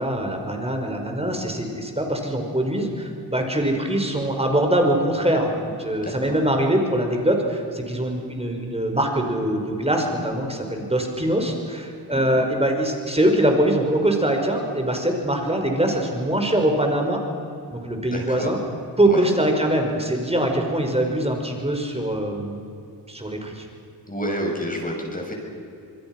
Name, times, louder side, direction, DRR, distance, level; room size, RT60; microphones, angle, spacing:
voice 1, 0.0-17.2 17.7-18.6 19.0-22.6 23.1-23.7, right 1 dB, 15° right, 3 dB, 5.3 m, -23 dB
voice 2, 6.0-6.4 12.1-12.4 18.0-18.5 19.0-19.3 24.1-25.3, equal, 20° left, 0 dB, 7.5 m, -30 dB
27.0 x 21.5 x 6.1 m, 2.7 s
cardioid pair, 65°, 43 cm